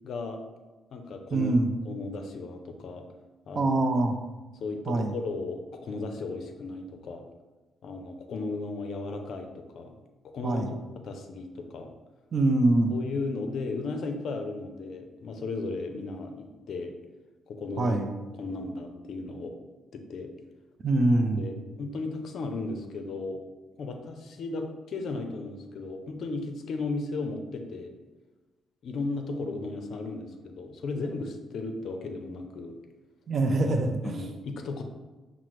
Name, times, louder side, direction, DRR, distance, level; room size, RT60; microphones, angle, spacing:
voice 1, 0.0-0.4 0.9-1.5 1.9-3.0 3.5-3.8 4.6-7.2 7.8-9.9 10.3-10.6 11.0-11.9 12.9-16.9 17.5-18.0 18.3-19.5 19.9-20.3 21.4-23.4 23.8-27.9 28.8-32.8 34.0-34.8, left 3 dB, 65° left, 5 dB, 0.5 m, -35 dB
voice 2, 1.3-1.7 3.5-4.1 4.9-5.2 10.4-10.7 12.3-12.9 17.8-18.1 20.8-21.4 33.3-34.2, right 2 dB, 45° right, 6 dB, 0.4 m, -24 dB
5.7 x 2.0 x 3.1 m, 1.2 s
cardioid pair, 90°, 0 cm